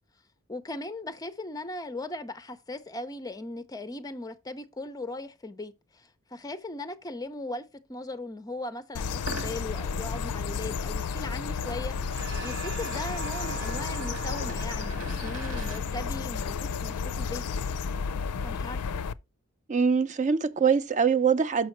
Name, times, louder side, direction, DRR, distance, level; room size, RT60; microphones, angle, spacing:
voice 1, 0.5-17.4 18.4-18.9, left 2 dB, 15° left, 0.5 m, -38 dB
sound 1, 9.0-19.1, left 5 dB, 90° left, 0.4 m, -32 dB
sound 2, 9.2-15.8, right 1 dB, 75° right, 1.6 m, -44 dB
sound 3, 12.1-16.9, right 5 dB, 60° right, 1.1 m, -42 dB
voice 2, 19.7-21.7, right 6 dB, 35° right, 0.6 m, -23 dB
6.4 x 6.2 x 4.4 m
head